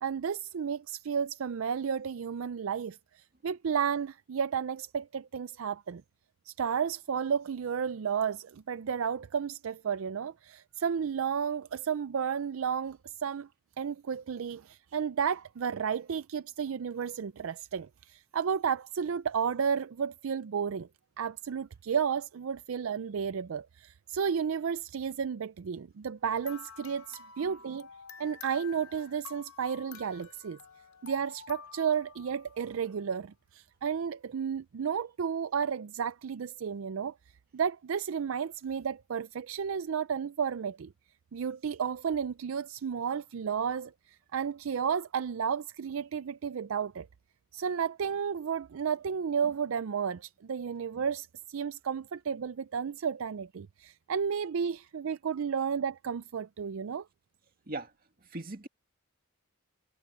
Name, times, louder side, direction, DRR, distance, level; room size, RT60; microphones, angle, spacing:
voice 1, 0.0-6.0 6.5-13.5 13.8-20.9 21.2-27.9 28.2-30.6 31.0-37.1 37.5-40.9 41.3-47.1 47.5-57.1, right 7 dB, 70° right, 0.4 m, -32 dB
sound 1, 26.4-32.9, left 7 dB, 85° left, 4.3 m, -49 dB
voice 2, 58.2-58.7, right 2 dB, 45° right, 2.2 m, -39 dB
head